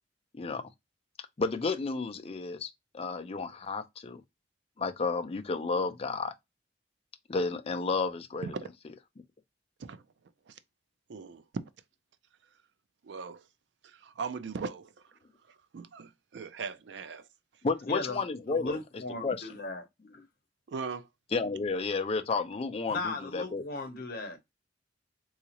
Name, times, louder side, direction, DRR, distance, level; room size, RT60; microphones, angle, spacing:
voice 1, 1.4-4.2 4.8-6.3 7.3-8.5 17.6-18.8 19.2-19.5 21.3-23.6, left 4 dB, 35° left, 0.4 m, -32 dB
voice 2, 11.1-11.6 13.0-13.4 13.8-15.2 15.5-17.3 20.7-21.1, right 5 dB, 70° right, 0.4 m, -39 dB
voice 3, 17.9-18.2 18.5-19.8 22.9-24.4, left 3 dB, 55° left, 0.8 m, -37 dB
3.9 x 2.4 x 2.9 m
head